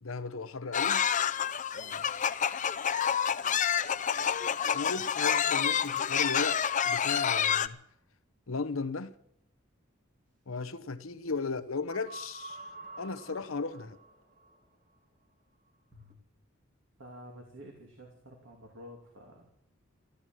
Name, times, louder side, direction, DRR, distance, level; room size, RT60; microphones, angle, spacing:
voice 1, 0.0-1.1 4.7-7.8 8.5-9.1 10.5-12.6 13.0-14.0, left 4 dB, 80° left, 0.9 m, -36 dB
sound 1, 0.7-7.7, left 8 dB, 40° left, 0.6 m, -28 dB
voice 2, 1.7-2.0 17.0-19.5, equal, 65° right, 2.9 m, -50 dB
sound 2, 11.9-14.6 15.9-16.2, right 2 dB, 40° right, 2.4 m, -47 dB
14.0 x 13.0 x 7.7 m
head